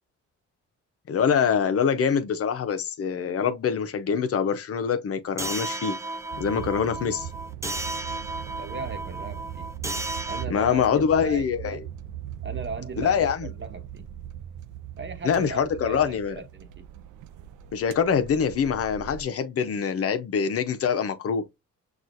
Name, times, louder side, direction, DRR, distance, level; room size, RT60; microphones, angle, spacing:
voice 1, 1.1-6.0 6.4-7.3 10.5-11.8 13.0-13.5 15.2-16.4 17.7-21.4, left 7 dB, 50° left, 0.7 m, -24 dB
sound 1, 5.4-10.4, right 2 dB, 10° right, 0.5 m, -33 dB
sound 2, 6.3-19.2, right 10 dB, 80° right, 0.5 m, -39 dB
voice 2, 8.4-9.7 10.3-10.9 11.2-11.9 12.4-14.0 15.0-16.8, right 4 dB, 40° right, 1.1 m, -38 dB
6.0 x 2.4 x 2.6 m
cardioid pair, 90°, 30 cm